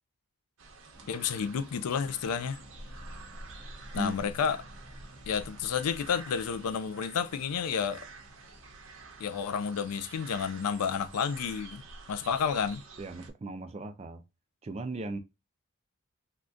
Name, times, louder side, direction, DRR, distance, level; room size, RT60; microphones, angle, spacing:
sound 1, 0.6-13.3, right 3 dB, 60° right, 0.7 m, -48 dB
sound 2, 0.9-10.5, equal, 5° left, 0.7 m, -56 dB
voice 1, 1.1-2.6 3.9-4.6 5.3-8.1 9.2-11.8 12.1-12.8, left 6 dB, 85° left, 0.4 m, -31 dB
voice 2, 13.0-14.2 14.6-15.2, right 1 dB, 30° right, 0.3 m, -37 dB
3.5 x 2.3 x 2.5 m
head